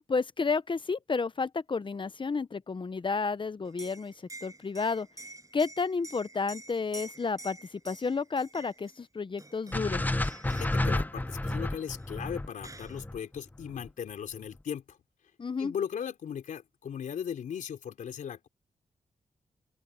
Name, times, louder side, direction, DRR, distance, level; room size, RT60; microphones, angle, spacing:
voice 1, 0.1-4.1 4.4-5.1 5.5-10.1 15.4-15.7, left 4 dB, 40° left, 0.9 m, -31 dB
Liquid, 3.6-9.0 9.4-9.9 10.2-10.8 12.0-12.1 12.3-13.0, right 2 dB, 25° right, 7.0 m, -48 dB
sound 1, 9.7-13.9, left 2 dB, 15° left, 0.9 m, -31 dB
voice 2, 10.5-15.0 15.6-18.5, left 8 dB, 85° left, 3.8 m, -37 dB
open air
cardioid pair, 70°, 13 cm